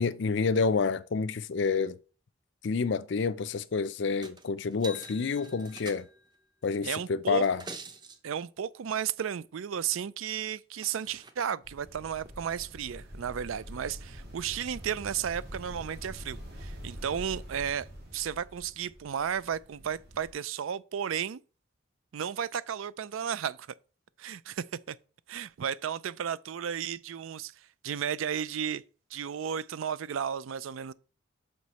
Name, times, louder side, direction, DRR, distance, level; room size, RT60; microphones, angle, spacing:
voice 1, 0.0-2.0 2.6-6.1 6.6-7.6, left 5 dB, 60° left, 0.4 m, -28 dB
sound 1, 4.2-4.5 4.7-6.4 7.3-8.2 10.3-10.4 10.8-11.3 12.3-12.4, right 2 dB, 20° right, 0.6 m, -45 dB
voice 2, 6.8-7.4 8.2-17.9 18.1-21.4 22.1-23.7 24.2-25.0 25.3-27.5 27.8-28.8 29.1-30.9, right 8 dB, 80° right, 0.4 m, -33 dB
sound 2, 11.6-20.3, equal, 50° right, 2.8 m, -45 dB
6.5 x 5.0 x 4.1 m
head